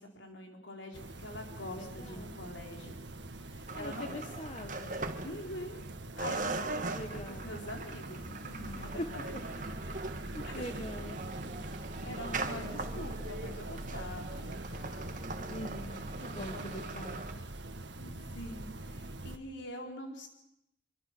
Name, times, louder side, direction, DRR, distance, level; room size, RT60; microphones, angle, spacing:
voice 1, 0.0-3.0 3.3-4.2 5.2-5.8 6.2-7.0 7.3-9.7 10.4-10.6 12.0-15.4 16.2-17.3 18.0-20.3, left 1 dB, 70° left, 2 dB, 4.6 m, -45 dB
sound 1, 0.9-19.4, right 1 dB, 65° right, 1.7 m, -44 dB
voice 2, 1.7-2.5 3.7-5.0 6.7-7.5 8.7-9.1 10.3-11.2 15.5-17.4, left 1 dB, 35° left, 5 dB, 1.3 m, -43 dB
sound 2, 3.7-5.8 6.2-17.3, right 3 dB, 40° right, 1.6 m, -40 dB
25.0 x 24.0 x 6.1 m, 0.79 s
head